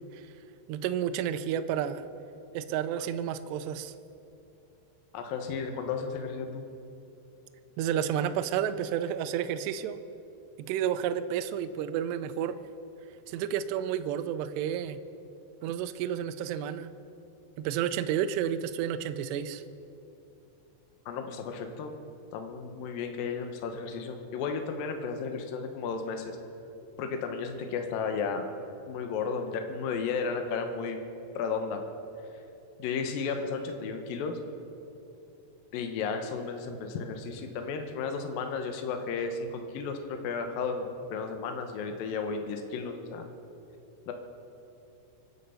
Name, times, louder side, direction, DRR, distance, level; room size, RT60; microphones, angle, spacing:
voice 1, 0.7-2.0 2.5-3.9 7.8-10.0 10.7-12.6 13.3-15.0 15.6-16.9 17.6-19.6, right 9 dB, 85° right, 10 dB, 2.4 m, -31 dB
voice 2, 5.1-6.7 21.1-21.9 22.3-26.4 27.0-28.4 28.9-31.0 31.4-31.8 32.8-34.4 35.7-40.9 41.1-43.3 44.1-44.2, left 5 dB, 75° left, 5 dB, 2.1 m, -33 dB
25.0 x 9.2 x 5.7 m, 2.8 s
omnidirectional pair, 5.6 m